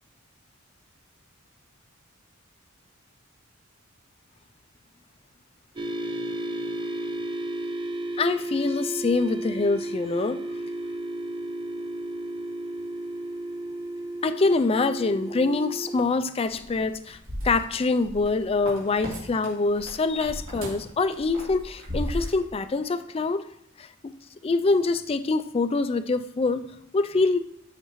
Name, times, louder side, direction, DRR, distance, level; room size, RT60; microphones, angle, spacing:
sound 1, 5.8-16.0, right 1 dB, 25° right, 0.5 m, -33 dB
voice 1, 8.2-10.4 14.2-17.2 17.4-23.4 23.8-24.1 24.4-26.6 26.9-27.4, left 3 dB, 25° left, 11 dB, 0.3 m, -25 dB
sound 2, 16.4-19.2 19.4-22.3, equal, 70° right, 3.3 m, -35 dB
13.5 x 5.8 x 3.1 m, 0.74 s
head